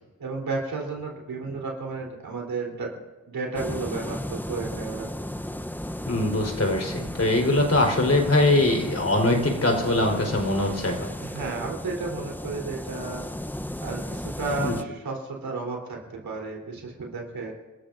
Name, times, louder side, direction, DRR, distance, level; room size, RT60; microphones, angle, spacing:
voice 1, 0.2-3.0 3.3-5.1 11.2-13.3 13.8-17.5, right 3 dB, 85° right, -1 dB, 3.8 m, -32 dB
sound 1, 3.6-14.8, left 1 dB, 5° left, 0.8 m, -35 dB
voice 2, 6.1-11.0 14.6-14.8, left 2 dB, 45° left, 2 dB, 4.3 m, -22 dB
29.5 x 13.5 x 2.7 m, 1.2 s
cardioid pair, 40°, 34 cm